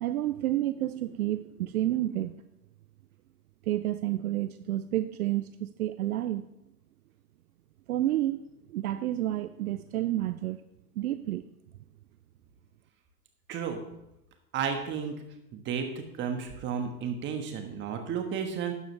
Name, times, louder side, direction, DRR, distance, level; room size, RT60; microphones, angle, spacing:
voice 1, 0.0-2.4 3.7-6.5 7.9-10.6 11.0-11.5, right 14 dB, 65° right, 12 dB, 0.6 m, -30 dB
voice 2, 13.5-13.8 14.5-15.1 15.5-15.9 16.2-18.7, right 7 dB, 25° right, 5 dB, 1.5 m, -32 dB
12.5 x 8.9 x 3.3 m, 0.89 s
hypercardioid pair, 130°, 47 cm